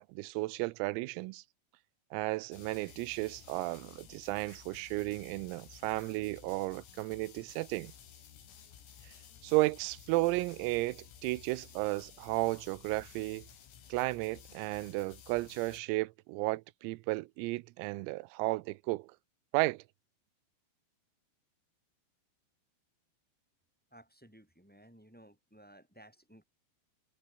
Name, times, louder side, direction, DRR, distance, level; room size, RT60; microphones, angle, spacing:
voice 1, 0.0-1.4 2.1-7.9 9.0-9.1 9.4-13.5 13.9-19.1 19.5-19.8, right 22 dB, 90° right, 3.5 m, -33 dB
sound 1, 2.5-15.8, left 8 dB, 85° left, 6.9 m, -55 dB
voice 2, 23.9-26.4, right 1 dB, ahead, 6.4 m, -57 dB
omnidirectional pair, 6.0 m